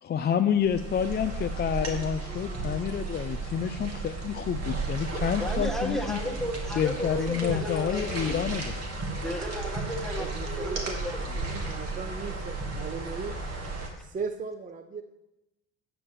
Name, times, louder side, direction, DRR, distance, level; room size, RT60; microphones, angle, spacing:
voice 1, 0.0-6.2 6.7-9.0, left 8 dB, 30° left, 8 dB, 0.4 m, -29 dB
sound 1, 0.6-13.9, right 3 dB, 45° right, 2.2 m, -34 dB
voice 2, 5.4-8.3 9.2-11.2, left 1 dB, ahead, 2 dB, 1.5 m, -34 dB
voice 3, 10.2-13.4 14.0-15.0, right 4 dB, 20° right, 8 dB, 0.6 m, -37 dB
12.0 x 7.8 x 3.1 m, 0.96 s
supercardioid pair, 75°, 37 cm